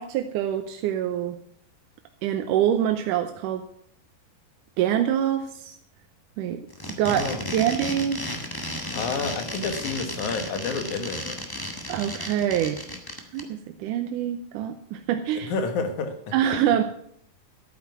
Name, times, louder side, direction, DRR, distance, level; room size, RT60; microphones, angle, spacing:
voice 1, 0.0-1.4 2.2-3.7 4.8-5.7 6.4-6.6 6.9-8.2 11.9-12.8 13.3-15.5 16.3-16.8, right 10 dB, 85° right, 7 dB, 2.3 m, -25 dB
sound 1, 6.7-13.4, left 1 dB, 25° left, 0.5 m, -33 dB
voice 2, 7.1-7.4 8.9-11.4 15.4-16.3, left 4 dB, 70° left, 7 dB, 2.9 m, -29 dB
12.5 x 9.4 x 6.0 m, 0.66 s
omnidirectional pair, 3.7 m